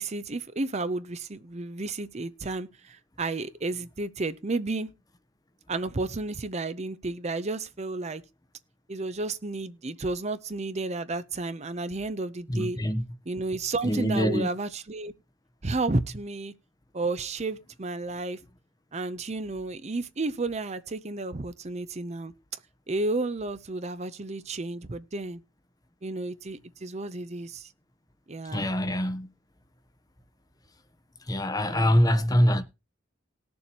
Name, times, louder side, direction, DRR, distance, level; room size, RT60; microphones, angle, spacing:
voice 1, 0.0-4.9 5.7-8.2 8.9-12.8 13.3-15.1 15.6-16.5 16.9-18.4 18.9-22.3 22.9-25.4 26.0-27.7 28.3-28.7 31.6-32.0, right 2 dB, 35° right, 0.7 m, -32 dB
voice 2, 12.5-13.0 13.9-14.5 28.5-29.3 31.3-32.6, equal, 20° left, 0.9 m, -24 dB
19.0 x 7.0 x 2.9 m
head